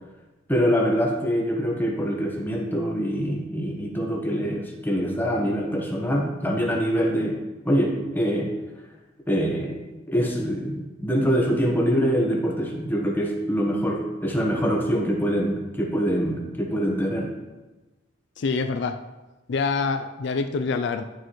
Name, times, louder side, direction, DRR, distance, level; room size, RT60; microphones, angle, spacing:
voice 1, 0.5-7.4 7.6-8.5 9.3-9.8 10.1-17.3, equal, 10° left, -1 dB, 1.2 m, -24 dB
voice 2, 18.4-19.0 19.5-21.0, left 4 dB, 60° left, 8 dB, 0.4 m, -26 dB
11.0 x 6.4 x 3.1 m, 1.1 s
head